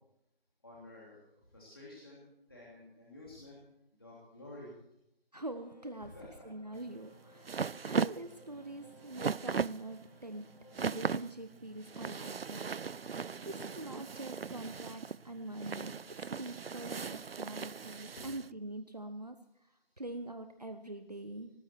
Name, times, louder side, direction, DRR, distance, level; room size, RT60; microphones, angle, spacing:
voice 1, 0.6-3.6 3.9-4.8 6.0-6.5 13.4-13.7 18.1-18.2 19.8-20.0, left 1 dB, 25° left, -6 dB, 3.0 m, -52 dB
voice 2, 5.3-6.1 6.4-10.5 10.8-12.7 13.2-21.5, right 1 dB, 45° right, 8 dB, 1.0 m, -44 dB
sound 1, 5.6-11.3, left 3 dB, 45° left, 1.5 m, -61 dB
sound 2, 6.8-18.5, right 5 dB, 75° right, 0.5 m, -38 dB
18.5 x 14.5 x 4.6 m, 0.81 s
figure-of-eight pair, 175°, 29 cm